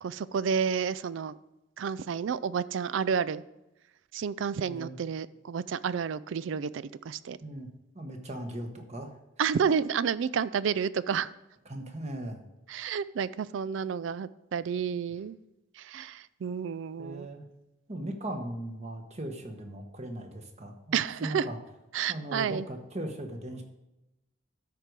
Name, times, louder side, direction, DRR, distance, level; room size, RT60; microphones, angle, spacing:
voice 1, 0.0-1.4 1.8-3.4 4.1-7.4 9.4-11.3 12.7-15.4 15.8-17.3 20.9-21.5 21.9-22.7, right 7 dB, 75° right, 17 dB, 0.4 m, -30 dB
voice 2, 7.9-9.1 11.6-12.4 17.0-17.4 17.9-21.6 22.1-23.6, right 1 dB, 35° right, 4 dB, 1.2 m, -38 dB
13.0 x 5.2 x 4.7 m, 0.97 s
head